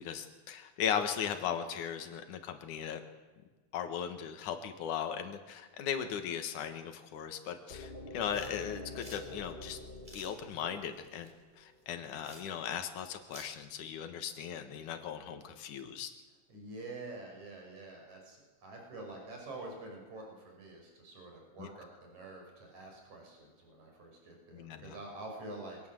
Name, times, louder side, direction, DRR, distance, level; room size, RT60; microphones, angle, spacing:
voice 1, 0.0-3.0 3.7-9.8 10.1-11.3 11.6-16.1 21.6-21.7 24.5-25.0, left 8 dB, 85° left, 7 dB, 3.0 m, -38 dB
sound 1, 7.7-11.6, left 2 dB, 25° left, 1.4 m, -47 dB
sound 2, 8.3-13.5, equal, 15° right, 4.2 m, -55 dB
voice 2, 16.5-25.8, right 2 dB, 70° right, 1 dB, 7.1 m, -47 dB
24.0 x 19.0 x 7.7 m, 1.3 s
omnidirectional pair, 3.4 m